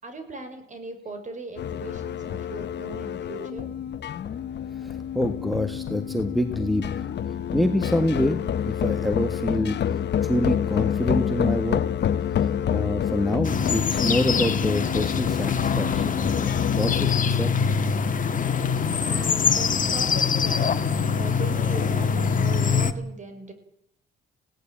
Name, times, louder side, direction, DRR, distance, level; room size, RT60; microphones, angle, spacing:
voice 1, 0.0-3.7 19.0-20.8 21.2-23.5, right 2 dB, 40° right, 7 dB, 6.4 m, -39 dB
sound 1, 1.6-17.2, left 9 dB, 60° left, 1.3 m, -28 dB
voice 2, 4.8-7.1 7.5-9.8 10.2-11.8 12.4-17.5, equal, ahead, 8 dB, 1.7 m, -27 dB
sound 2, 13.4-22.9, left 6 dB, 40° left, 1.9 m, -24 dB
21.5 x 17.5 x 8.8 m, 0.74 s
cardioid pair, 90°, 20 cm